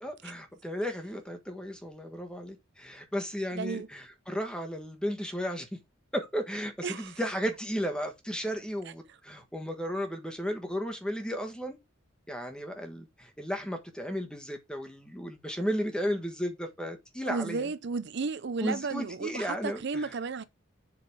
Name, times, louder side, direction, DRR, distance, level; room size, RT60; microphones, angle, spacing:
voice 1, 0.0-5.7 6.1-11.8 12.3-17.7 18.6-20.1, equal, 5° left, 1.4 m, -34 dB
voice 2, 3.5-3.9 6.8-7.2 17.3-20.4, right 4 dB, 55° right, 0.5 m, -33 dB
7.7 x 3.9 x 5.0 m
head